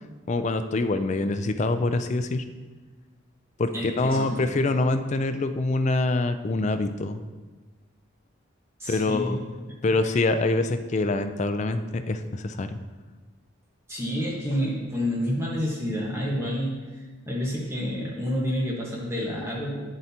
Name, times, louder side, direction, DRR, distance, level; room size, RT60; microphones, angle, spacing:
voice 1, 0.3-2.4 3.6-7.2 8.9-9.4 9.8-12.8, left 2 dB, 35° left, 9 dB, 0.4 m, -25 dB
voice 2, 3.7-4.4 8.8-9.4 9.7-9.8 13.9-16.8 17.3-19.8, equal, 15° right, -4 dB, 1.4 m, -29 dB
9.2 x 7.5 x 2.9 m, 1.3 s
head